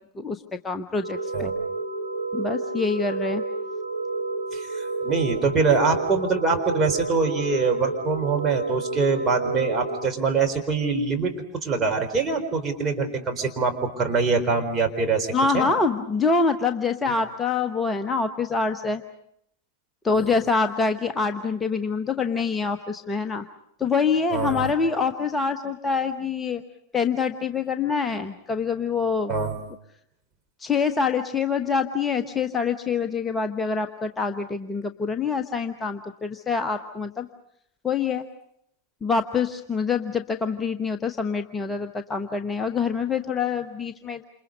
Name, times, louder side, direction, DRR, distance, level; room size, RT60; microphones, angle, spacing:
voice 1, 0.2-1.5 2.3-3.4 15.3-19.0 20.0-23.4 23.8-26.6 26.9-29.3 30.6-37.3 37.8-38.2 39.0-44.2, left 5 dB, 15° left, 6 dB, 1.1 m, -25 dB
sound 1, 1.0-10.1, right 3 dB, 85° right, 1.5 m, -30 dB
voice 2, 4.5-15.7 20.2-20.3 24.3-24.7 29.3-29.5, right 4 dB, 20° right, 4 dB, 4.1 m, -24 dB
28.5 x 28.0 x 5.3 m, 0.74 s
figure-of-eight pair, 90°, 0 cm